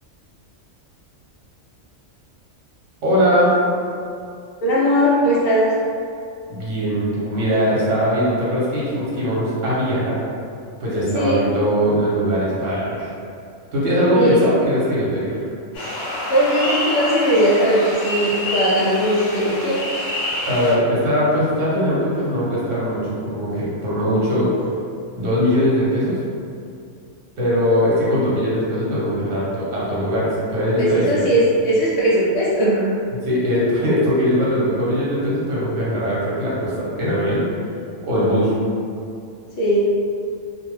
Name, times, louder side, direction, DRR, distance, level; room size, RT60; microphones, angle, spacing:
voice 1, 3.0-3.5 6.5-10.2 10.8-13.1 13.7-15.5 20.4-24.5 25.2-26.2 27.4-31.3 33.2-37.4 38.0-38.5, equal, 80° right, -7 dB, 1.2 m, -20 dB
voice 2, 4.6-5.7 11.1-11.4 14.1-14.4 16.3-19.8 30.8-32.8 39.6-39.8, equal, 65° left, -8 dB, 0.7 m, -18 dB
sound 1, 15.7-20.7, left 1 dB, 80° left, 1.1 m, -26 dB
2.6 x 2.2 x 3.1 m, 2.4 s
omnidirectional pair, 1.3 m